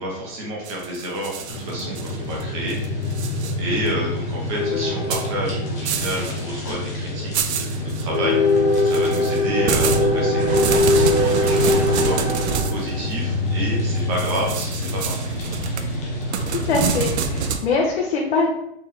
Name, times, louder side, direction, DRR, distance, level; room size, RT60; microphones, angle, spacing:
voice 1, 0.0-2.8 3.6-8.4 8.8-15.2, right 1 dB, 25° right, -2 dB, 1.0 m, -30 dB
sound 1, 0.6-2.4 2.7-3.5 3.9-4.0 5.1-5.3 5.9-6.4 6.7-6.8 7.3-8.0 8.7-12.8 14.2-17.7, right 6 dB, 90° right, 0.6 m, -27 dB
sound 2, 1.5-17.5, left 2 dB, 15° left, 0.5 m, -23 dB
sound 3, 10.4-13.5, right 2 dB, 55° right, 1.2 m, -34 dB
voice 2, 16.5-18.5, left 4 dB, 70° left, -2 dB, 0.9 m, -23 dB
4.4 x 3.6 x 3.2 m, 0.79 s
supercardioid pair, 180°, 33 cm